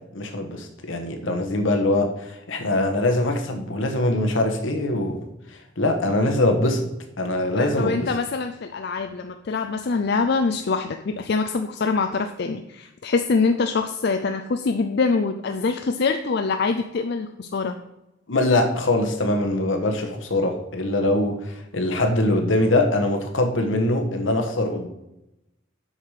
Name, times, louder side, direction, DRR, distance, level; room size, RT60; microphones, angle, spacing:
voice 1, 0.1-5.2 5.8-6.9 7.2-8.1 18.3-24.9, left 1 dB, 80° left, 4 dB, 1.3 m, -22 dB
voice 2, 7.6-17.8, left 4 dB, 55° left, 7 dB, 0.5 m, -24 dB
8.0 x 5.8 x 4.9 m, 0.90 s
head